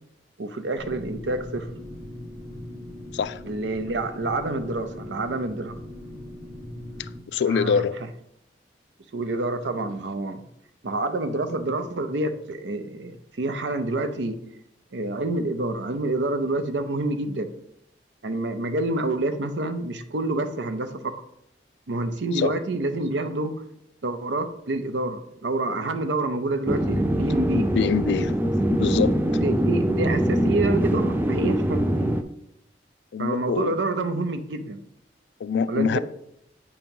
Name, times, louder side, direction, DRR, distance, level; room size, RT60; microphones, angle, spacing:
voice 1, 0.4-1.7 3.4-5.8 7.4-7.8 9.1-10.4 10.8-14.4 14.9-17.5 18.2-21.1 21.9-23.5 24.0-27.7 29.3-32.1 33.2-34.8 35.7-36.0, right 2 dB, 85° right, 0.6 m, -28 dB
sound 1, 0.8-7.2, left 1 dB, 45° right, 1.4 m, -40 dB
voice 2, 7.0-8.0 22.3-22.5 27.5-28.3 28.7-29.4 33.1-33.8 35.4-36.0, left 6 dB, 70° left, 0.3 m, -25 dB
sound 2, 26.7-32.2, right 1 dB, 10° right, 0.3 m, -23 dB
8.3 x 2.9 x 5.3 m
head